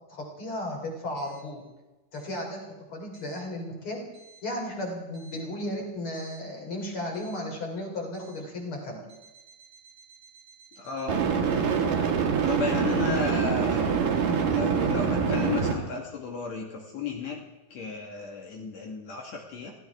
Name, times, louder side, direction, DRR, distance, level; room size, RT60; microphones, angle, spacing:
voice 1, 0.1-1.6 2.1-2.6 2.9-4.0 4.4-9.0, left 1 dB, 40° left, 0 dB, 3.8 m, -34 dB
sound 1, 6.2-6.4 11.1-15.7, right 6 dB, 80° right, 3.3 m, -25 dB
voice 2, 10.8-11.3 12.5-14.1 14.4-17.4 17.7-19.7, left 4 dB, 60° left, 0 dB, 2.5 m, -34 dB
24.5 x 15.5 x 3.5 m, 1.1 s
omnidirectional pair, 3.8 m